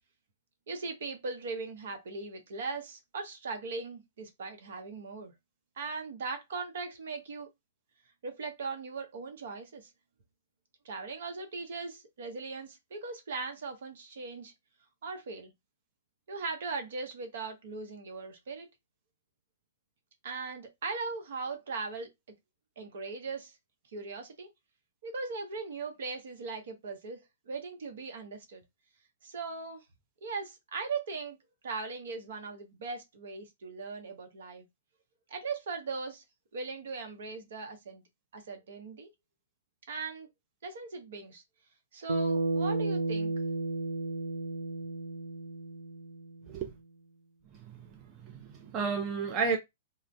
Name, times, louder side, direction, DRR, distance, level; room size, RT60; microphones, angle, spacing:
voice 1, 0.7-5.3 5.8-7.5 8.2-9.9 10.8-14.5 15.0-15.5 16.3-18.7 20.2-22.1 22.8-23.6 23.9-24.5 25.0-28.6 29.2-29.8 30.2-31.4 31.6-34.6 35.3-36.2 36.5-38.0 38.3-39.1 39.9-40.3 40.6-41.4 41.9-43.3, right 4 dB, 65° right, 0.8 m, -39 dB
Bass guitar, 42.1-46.5, right 3 dB, 80° right, 0.4 m, -32 dB
voice 2, 47.5-49.6, right 5 dB, 30° right, 0.6 m, -33 dB
2.4 x 2.1 x 3.3 m
hypercardioid pair, 115°, 0 cm